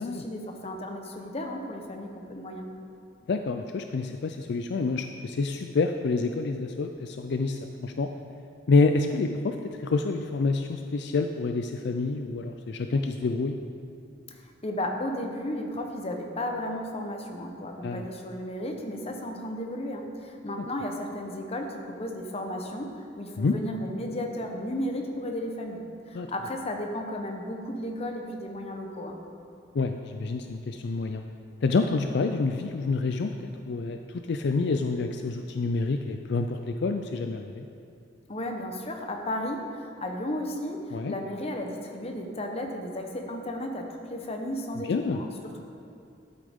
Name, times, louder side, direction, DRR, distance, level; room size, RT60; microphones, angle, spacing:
voice 1, 0.0-2.7 14.6-29.2 38.3-45.6, left 1 dB, 35° left, 3 dB, 0.9 m, -34 dB
voice 2, 3.3-8.1 8.7-13.6 17.8-18.1 23.4-23.6 26.1-26.3 29.7-31.2 31.6-34.0 34.3-37.7 40.9-41.1 44.8-45.2, left 3 dB, 65° left, 6 dB, 0.4 m, -27 dB
12.5 x 8.4 x 3.6 m, 2.6 s
head